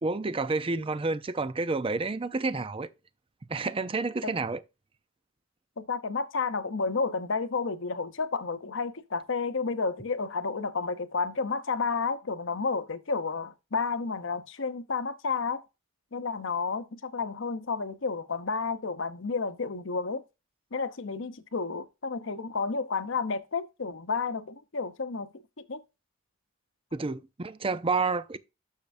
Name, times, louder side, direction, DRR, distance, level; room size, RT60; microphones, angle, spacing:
voice 1, 0.0-2.9 3.5-4.6 26.9-28.4, right 3 dB, 25° right, 0.5 m, -29 dB
voice 2, 5.8-15.6 16.1-20.2 20.7-25.3 25.7-25.8, left 4 dB, 60° left, 0.8 m, -31 dB
10.0 x 6.6 x 2.6 m
head